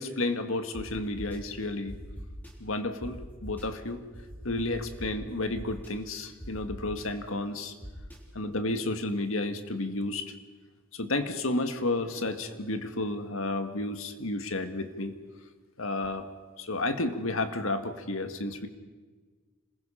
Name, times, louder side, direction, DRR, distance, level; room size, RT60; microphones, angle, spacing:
voice 1, 0.0-2.0 2.6-4.0 4.4-7.7 8.3-10.3 10.9-15.1 15.8-16.3 16.6-18.7, left 2 dB, 75° left, 8 dB, 1.8 m, -31 dB
sound 1, 0.7-0.8 1.2-1.4 1.9-2.5 3.0-3.1 3.4-3.6 4.1-5.1 5.6-5.9 6.4-7.0 7.8-8.2, equal, 10° left, 3.7 m, -41 dB
27.0 x 20.5 x 5.7 m, 1.4 s
head